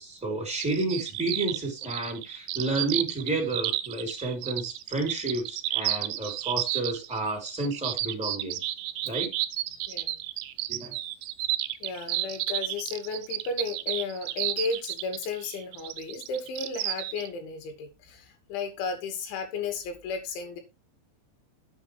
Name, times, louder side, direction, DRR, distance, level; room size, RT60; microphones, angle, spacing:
voice 1, 0.0-8.6 9.0-9.3 10.7-10.9, right 2 dB, ahead, 2 dB, 3.4 m, -31 dB
sound 1, 0.6-17.3, right 15 dB, 80° right, 2.8 m, -32 dB
voice 2, 9.9-10.2 11.8-20.6, left 4 dB, 85° left, 5 dB, 4.8 m, -34 dB
11.5 x 8.3 x 3.4 m, 0.25 s
omnidirectional pair, 5.2 m